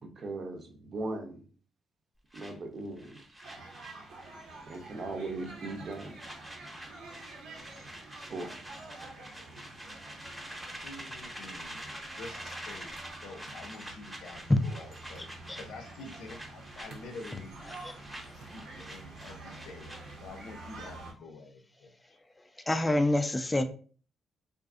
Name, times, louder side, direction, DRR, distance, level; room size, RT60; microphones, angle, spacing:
voice 1, 0.0-1.5 2.3-3.2 4.7-6.2 8.3-8.5, right 2 dB, 50° right, 4 dB, 0.6 m, -38 dB
sound 1, 2.3-4.6 4.8-5.1 5.4-20.3, equal, 10° right, 0.8 m, -46 dB
sound 2, 3.4-21.1, right 2 dB, 85° right, 0.8 m, -48 dB
voice 2, 10.8-11.9 12.2-17.6 18.2-19.9 20.2-21.9, left 3 dB, 75° left, 4 dB, 0.5 m, -48 dB
voice 3, 14.5-14.9 15.5-15.6 17.8-18.5 22.7-23.6, left 1 dB, 15° left, 7 dB, 0.3 m, -28 dB
2.5 x 2.4 x 2.4 m, 0.40 s
cardioid pair, 90°, 0 cm